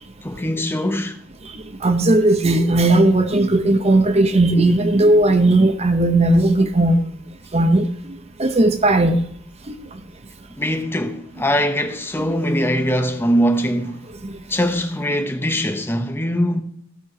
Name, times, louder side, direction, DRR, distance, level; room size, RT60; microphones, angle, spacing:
voice 1, 0.2-1.2 10.6-14.0 14.5-16.6, equal, 10° left, 0.8 m, -22 dB
voice 2, 1.8-7.0 7.5-9.2 9.7-9.8 12.2-12.3 14.2-14.3, right 2 dB, 35° right, 0.8 m, -16 dB
15.5 x 6.6 x 4.9 m
head